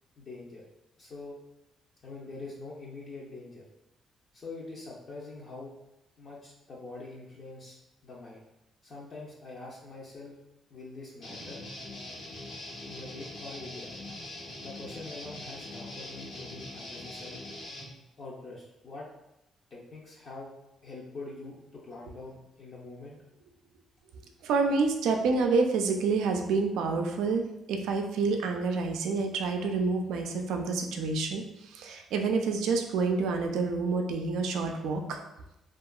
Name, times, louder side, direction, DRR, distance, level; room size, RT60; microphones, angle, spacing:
voice 1, 0.2-0.6 1.0-1.4 2.0-3.6 4.3-5.7 6.2-8.4 8.8-10.4 10.7-11.6 12.8-13.9 14.6-17.4 18.2-19.1 19.7-20.5 20.8-23.2, left 3 dB, 50° left, -6 dB, 0.5 m, -44 dB
Guitar, 11.2-17.9, left 1 dB, 80° left, 0.9 m, -42 dB
voice 2, 24.4-35.2, right 4 dB, 90° right, 3 dB, 0.3 m, -28 dB
2.8 x 2.3 x 2.3 m, 0.90 s
cardioid pair, 90°, 0 cm